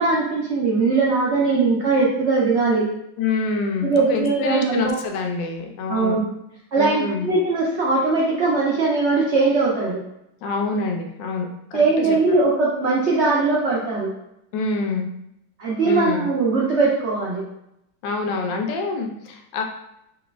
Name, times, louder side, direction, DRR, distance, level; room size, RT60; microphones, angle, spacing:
voice 1, 0.0-2.9 3.8-4.9 5.9-6.2 6.7-10.0 11.7-14.1 15.6-17.4, right 3 dB, 90° right, -4 dB, 0.6 m, -20 dB
voice 2, 3.2-6.2 6.8-7.3 10.4-12.2 14.5-15.1 15.8-16.3 18.0-19.6, left 4 dB, 80° left, 3 dB, 1.2 m, -26 dB
3.9 x 3.2 x 2.3 m, 0.82 s
omnidirectional pair, 2.0 m